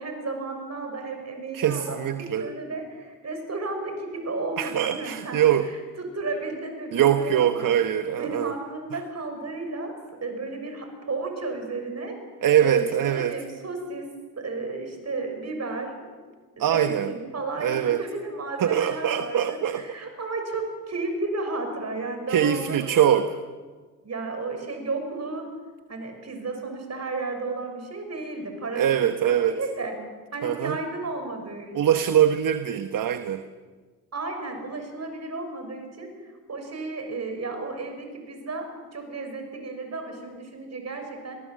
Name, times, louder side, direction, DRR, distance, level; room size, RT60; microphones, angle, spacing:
voice 1, 0.0-7.7 8.2-9.9 10.2-12.2 12.6-14.1 14.4-15.9 16.6-23.2 24.0-25.5 25.9-29.9 30.3-32.0 34.1-36.1 36.5-41.4, right 3 dB, 45° right, 5 dB, 6.4 m, -33 dB
voice 2, 1.5-2.5 4.6-5.7 6.9-8.5 8.9-9.0 12.4-13.4 16.6-17.1 17.6-18.0 18.6-20.0 22.3-23.3 28.7-29.6 30.4-30.8 31.7-33.4, right 10 dB, 60° right, 9 dB, 1.1 m, -23 dB
25.0 x 19.0 x 7.6 m, 1.4 s
cardioid pair, 70°, 36 cm